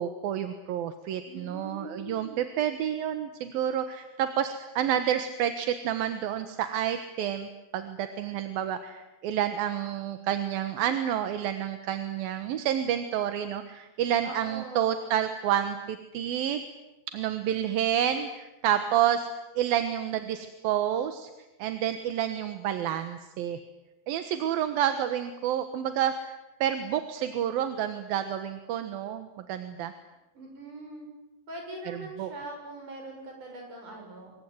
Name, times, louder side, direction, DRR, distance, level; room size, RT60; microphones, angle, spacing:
voice 1, 0.0-16.6 17.1-19.3 19.6-21.3 21.6-23.6 24.1-26.4 26.6-29.9 31.9-32.3, right 10 dB, 70° right, 9 dB, 2.9 m, -29 dB
voice 2, 1.3-2.4 14.2-15.1 30.3-31.1 31.5-34.3, right 1 dB, 50° right, 2 dB, 8.8 m, -42 dB
26.5 x 23.5 x 9.5 m, 1.0 s
omnidirectional pair, 4.8 m